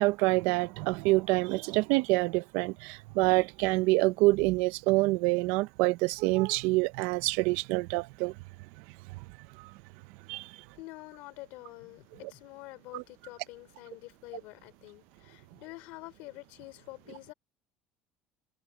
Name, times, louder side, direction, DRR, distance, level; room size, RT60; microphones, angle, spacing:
voice 1, 0.0-8.3 9.6-9.7 10.3-10.5 12.9-13.0, right 22 dB, 70° right, 0.5 m, -26 dB
voice 2, 10.7-17.3, left 21 dB, 70° left, 3.2 m, -47 dB
cardioid pair, 175°, 3 cm